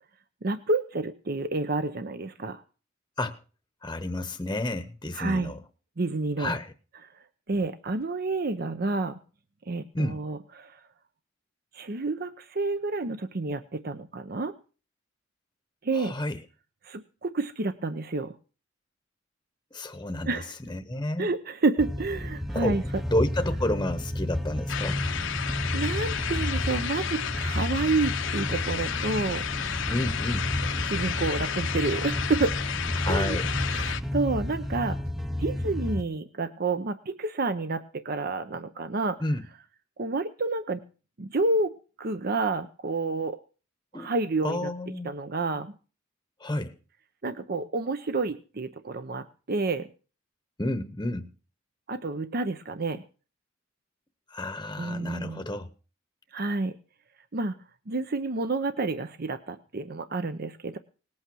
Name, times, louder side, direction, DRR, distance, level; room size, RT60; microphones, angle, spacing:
voice 1, 0.4-2.6 5.1-5.5 6.0-6.6 7.5-9.2 9.7-10.8 11.7-14.5 15.8-16.1 16.8-18.3 20.3-20.5 21.2-22.8 25.4-29.4 30.8-32.6 33.1-33.4 33.7-35.0 35.4-39.2 40.0-40.8 41.2-43.4 43.9-44.7 45.0-45.7 47.2-49.9 51.9-53.0 54.8-55.4 56.3-56.8 57.3-57.6 57.9-60.8, right 3 dB, 50° right, 10 dB, 0.8 m, -29 dB
voice 2, 3.8-5.6 6.4-6.7 9.9-10.2 15.9-16.4 19.7-20.3 20.7-21.3 22.5-22.8 23.1-25.0 29.9-30.5 33.0-33.6 39.2-39.4 43.9-44.1 44.4-45.1 46.4-46.7 50.6-51.3 54.3-55.7, left 1 dB, 20° left, 9 dB, 1.0 m, -30 dB
sound 1, 21.8-36.0, left 1 dB, ahead, 0.6 m, -31 dB
sound 2, 24.7-34.0, left 8 dB, 75° left, 0.9 m, -32 dB
19.0 x 8.6 x 6.2 m, 0.37 s
head